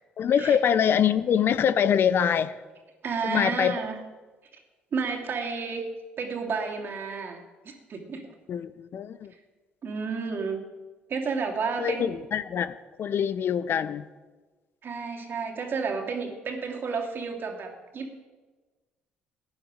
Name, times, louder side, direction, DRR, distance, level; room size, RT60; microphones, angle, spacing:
voice 1, 0.2-2.5 3.2-3.7 8.5-9.3 11.8-14.0, left 8 dB, 50° left, 15 dB, 0.6 m, -24 dB
voice 2, 3.0-4.0 4.9-5.8 6.2-8.3 9.8-10.6 11.1-12.1 14.8-18.2, right 5 dB, 50° right, 2 dB, 2.5 m, -31 dB
16.0 x 9.8 x 5.1 m, 1.3 s
hypercardioid pair, 50°, 5 cm